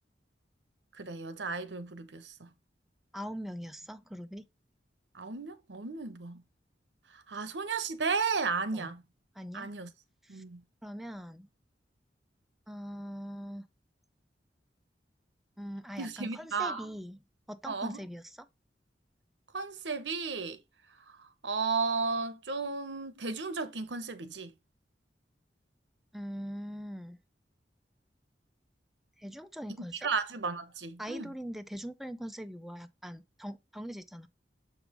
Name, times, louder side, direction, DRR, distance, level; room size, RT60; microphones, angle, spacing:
voice 1, 1.0-2.5 5.1-6.4 7.3-9.0 9.5-9.9 10.3-10.6 16.0-16.9 17.7-18.0 19.5-20.6 21.4-24.5 29.8-31.3, right 4 dB, 85° right, 0.9 m, -34 dB
voice 2, 3.1-4.5 8.7-8.9 9.4-9.7 10.2-10.4 10.8-11.5 12.7-13.7 15.6-17.2 17.5-18.5 26.1-27.2 29.2-30.1 31.0-34.3, equal, ahead, 0.5 m, -42 dB
7.1 x 5.3 x 3.0 m
head